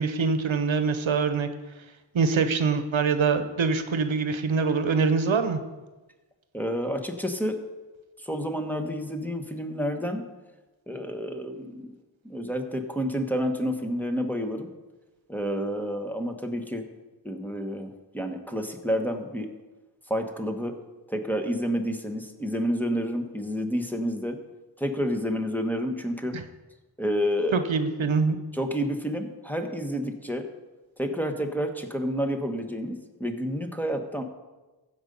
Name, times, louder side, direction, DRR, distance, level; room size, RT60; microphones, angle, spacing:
voice 1, 0.0-1.5 2.1-5.6 26.3-26.4 27.5-28.4, right 5 dB, 75° right, 9 dB, 0.9 m, -24 dB
voice 2, 6.5-7.6 8.2-10.2 10.9-11.9 12.2-14.7 15.3-16.8 17.2-17.9 18.1-19.5 20.1-20.7 21.1-24.4 24.8-26.4 27.0-27.7 28.5-30.5 31.0-34.2, equal, 5° left, 3 dB, 1.3 m, -29 dB
15.0 x 5.4 x 5.4 m, 1.1 s
cardioid pair, 40°, 47 cm